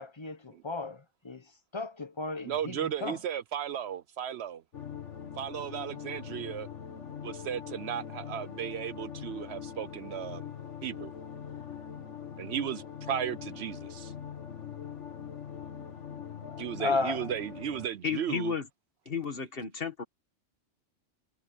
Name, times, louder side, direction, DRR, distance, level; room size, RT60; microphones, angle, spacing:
voice 1, 0.0-3.2 16.4-17.3, left 3 dB, 25° left, 1.0 m, -35 dB
voice 2, 2.4-4.6 5.4-6.7 7.2-10.5 10.8-11.1 12.4-14.1 16.6-18.5, right 9 dB, 70° right, 0.8 m, -35 dB
sound 1, 4.7-17.9, left 8 dB, 75° left, 1.9 m, -42 dB
voice 3, 18.0-18.7 19.1-20.0, left 6 dB, 50° left, 1.9 m, -33 dB
omnidirectional pair, 1.2 m